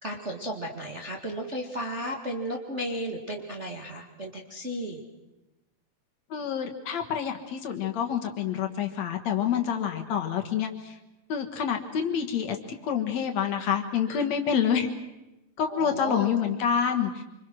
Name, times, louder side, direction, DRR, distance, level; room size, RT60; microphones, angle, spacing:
voice 1, 0.0-5.0 10.1-10.2 14.1-14.2 15.7-16.3, equal, 30° right, 1 dB, 1.4 m, -34 dB
voice 2, 6.3-11.0 11.3-14.9 15.6-17.2, left 8 dB, 60° left, 5 dB, 2.4 m, -27 dB
26.5 x 25.5 x 6.2 m, 1.0 s
omnidirectional pair, 3.8 m